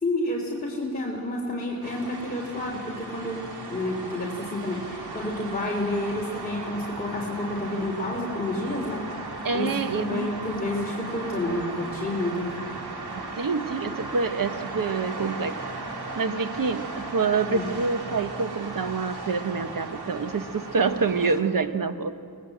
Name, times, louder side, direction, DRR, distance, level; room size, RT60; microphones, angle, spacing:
voice 1, 0.0-3.4 3.7-9.0 9.5-12.5 17.5-17.6, left 1 dB, 25° left, -3 dB, 3.3 m, -29 dB
sound 1, 1.8-21.4, right 2 dB, 75° right, 3.3 m, -37 dB
voice 2, 9.4-10.3 13.4-15.6 16.2-22.1, right 4 dB, 55° right, 9 dB, 1.2 m, -27 dB
27.5 x 19.5 x 7.9 m, 2.4 s
wide cardioid pair, 105°, 39 cm